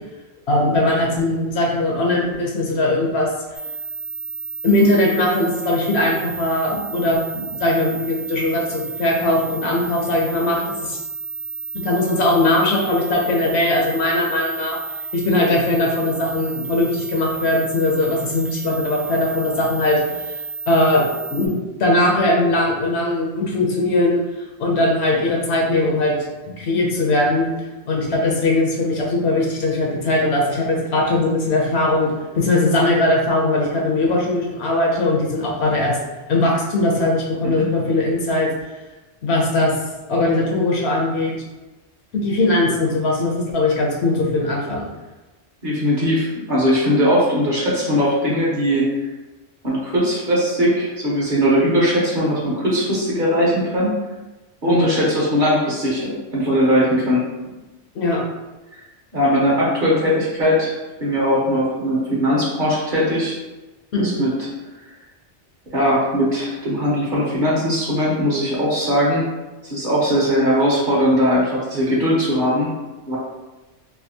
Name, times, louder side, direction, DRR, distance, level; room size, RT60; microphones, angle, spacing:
voice 1, 0.5-3.3 4.6-11.0 11.7-14.8 15.1-20.3 20.7-21.0 21.3-24.2 24.6-26.1 26.6-27.5 27.9-36.0 36.3-38.5 39.2-39.7 40.1-41.4 42.1-44.9 54.7-54.9 57.9-58.2 63.9-64.2, left 2 dB, 65° left, -1 dB, 0.9 m, -20 dB
sound 1, 3.5-21.5, right 5 dB, 20° left, 0.4 m, -31 dB
voice 2, 45.6-48.9 49.6-53.9 54.6-57.3 58.7-58.8 59.1-60.7 61.0-63.4 64.0-64.3 65.7-69.3 69.6-72.7 73.1-73.2, equal, 45° right, -5 dB, 1.0 m, -19 dB
3.4 x 2.6 x 2.7 m, 1.1 s
omnidirectional pair, 1.2 m